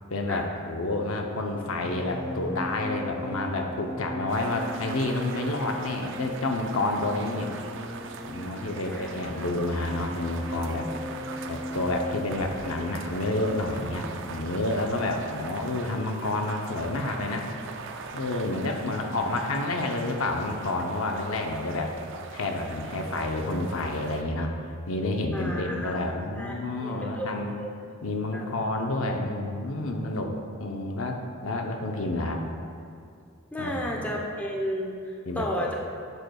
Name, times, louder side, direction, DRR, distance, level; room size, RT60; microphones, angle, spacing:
voice 1, 0.1-7.5 8.3-10.9 11.5-17.5 18.1-21.9 22.3-24.5 24.9-27.5 28.0-30.3 30.6-31.2 31.4-32.4 33.6-34.0 35.3-35.5, left 2 dB, 70° left, 2 dB, 0.7 m, -29 dB
sound 1, 1.4-18.0 18.3-18.6, left 1 dB, 10° right, 2.0 m, -40 dB
sound 2, 4.3-24.2, right 4 dB, 60° right, 0.5 m, -41 dB
voice 2, 25.3-26.0 26.4-27.7 28.3-28.5 33.5-35.8, equal, 5° left, -2 dB, 0.7 m, -33 dB
11.0 x 7.8 x 2.3 m, 2.3 s
head